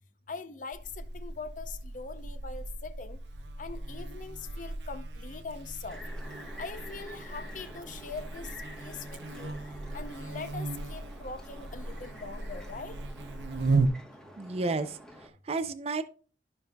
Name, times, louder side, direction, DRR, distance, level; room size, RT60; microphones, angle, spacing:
voice 1, 0.3-3.2 3.6-6.0 6.6-9.6 9.9-13.0, left 4 dB, 45° left, 0.6 m, -42 dB
Buzz, 0.7-13.9, right 3 dB, 85° right, 0.7 m, -36 dB
sound 1, 5.9-15.3, equal, 5° left, 1.1 m, -49 dB
voice 2, 14.4-16.0, right 3 dB, 35° right, 0.4 m, -32 dB
13.0 x 5.3 x 2.3 m
head